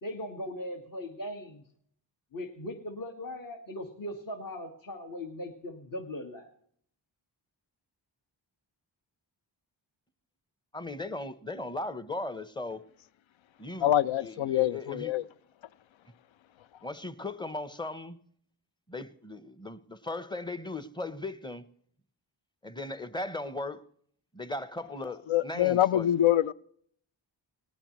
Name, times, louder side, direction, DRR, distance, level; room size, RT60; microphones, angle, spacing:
voice 1, 0.0-1.6 2.3-6.5, left 1 dB, 45° left, 1.8 m, -39 dB
voice 2, 10.7-12.9 13.6-13.9 14.2-15.1 16.8-18.2 18.9-21.6 22.6-23.9 24.3-26.2, left 2 dB, 10° left, 0.9 m, -37 dB
voice 3, 13.8-15.2 25.3-26.5, left 12 dB, 75° left, 0.6 m, -25 dB
18.5 x 18.5 x 3.2 m
cardioid pair, 50°, 47 cm